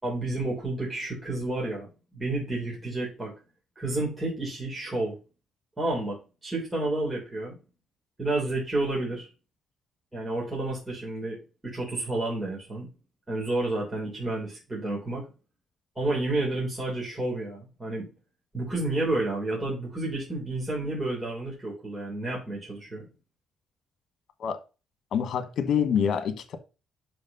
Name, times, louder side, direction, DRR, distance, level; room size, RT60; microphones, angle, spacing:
voice 1, 0.0-3.3 3.8-5.1 5.8-7.6 8.2-9.3 10.1-11.4 11.6-12.9 13.3-15.3 16.0-18.1 18.5-23.1, right 2 dB, 20° right, 3.9 m, -30 dB
voice 2, 25.1-26.6, left 7 dB, 65° left, 1.3 m, -26 dB
5.9 x 5.2 x 5.5 m
cardioid pair, 90°, 0 cm